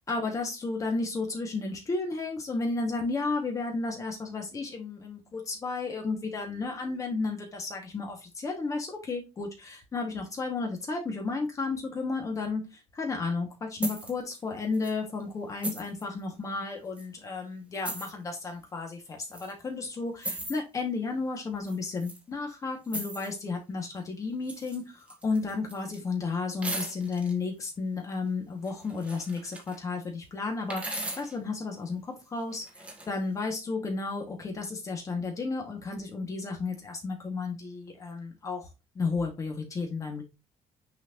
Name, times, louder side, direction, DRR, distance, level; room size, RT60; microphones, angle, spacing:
voice 1, 0.1-32.0 32.3-32.6 33.1-38.7 38.9-40.2, left 3 dB, 30° left, 2 dB, 2.2 m, -33 dB
sound 1, 13.8-14.1 14.7-14.9 15.6-16.0 17.0-17.1 17.8-18.1 19.3-19.5 20.2-20.6 21.7-22.2 22.9-23.3 24.4-24.8 25.1-26.0 26.6-27.3 28.6-29.8 30.7-31.4 32.5-33.1, right 1 dB, 10° right, 1.5 m, -37 dB
6.7 x 4.9 x 3.1 m, 0.25 s
cardioid pair, 155°, 12 cm